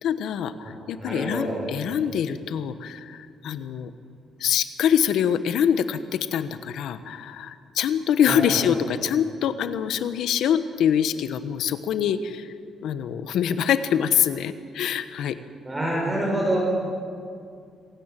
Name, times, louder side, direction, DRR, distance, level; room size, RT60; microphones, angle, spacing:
voice 1, 0.0-3.9 4.4-12.5 12.8-15.4, left 9 dB, 80° left, 11 dB, 1.2 m, -24 dB
voice 2, 1.0-1.6 1.9-2.0 8.3-8.6 15.6-16.6, right 1 dB, 15° right, -3 dB, 5.8 m, -27 dB
26.5 x 16.5 x 9.2 m, 2.4 s
cardioid pair, 145°, 0 cm